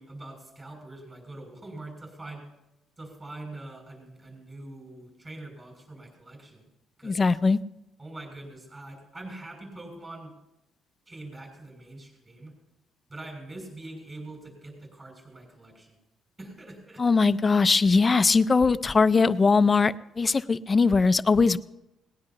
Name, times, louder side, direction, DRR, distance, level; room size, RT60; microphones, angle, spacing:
voice 1, 0.0-2.5 3.0-6.7 7.0-7.2 8.0-10.3 11.1-12.5 13.1-16.0 16.4-17.0, right 2 dB, 20° right, 1 dB, 6.5 m, -43 dB
voice 2, 7.0-7.6 17.0-21.6, left 4 dB, 25° left, 14 dB, 0.5 m, -21 dB
19.5 x 19.0 x 2.9 m, 0.91 s
cardioid pair, 140°, 0 cm